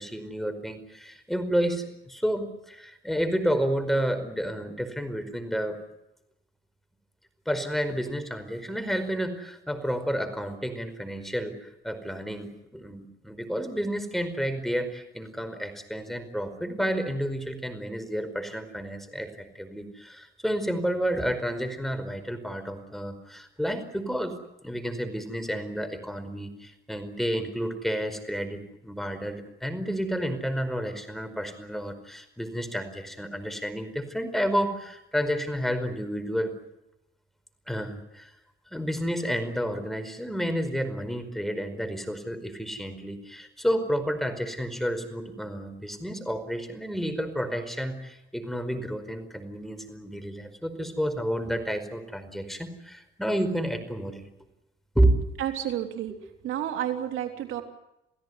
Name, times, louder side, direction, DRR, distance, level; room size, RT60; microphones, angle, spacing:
voice 1, 0.0-5.8 7.4-36.5 37.7-38.3 38.7-54.3 54.9-55.2, equal, ahead, 9 dB, 4.9 m, -30 dB
voice 2, 55.4-56.1 56.4-57.6, right 11 dB, 85° right, 5 dB, 3.4 m, -30 dB
28.5 x 16.5 x 9.7 m, 0.89 s
cardioid pair, 90°, 20 cm